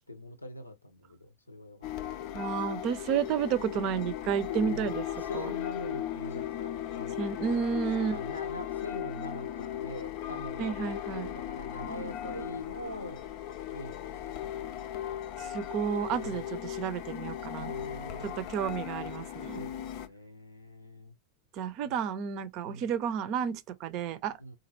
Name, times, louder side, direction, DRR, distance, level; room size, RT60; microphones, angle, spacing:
voice 1, 0.0-2.2 4.6-7.4 8.1-13.3 13.7-14.3 16.2-16.5 17.6-18.4 19.5-21.1 21.8-22.0 22.6-22.9 24.4-24.6, left 1 dB, 85° left, 0.8 m, -43 dB
sound 1, 1.8-20.1, left 11 dB, 45° left, 0.5 m, -37 dB
voice 2, 2.3-5.0 5.3-5.5 7.2-8.2 10.6-11.3 15.4-17.7 18.4-19.6 21.5-24.3, right 7 dB, 40° right, 0.6 m, -31 dB
4.1 x 2.6 x 2.9 m
figure-of-eight pair, 90°, 0 cm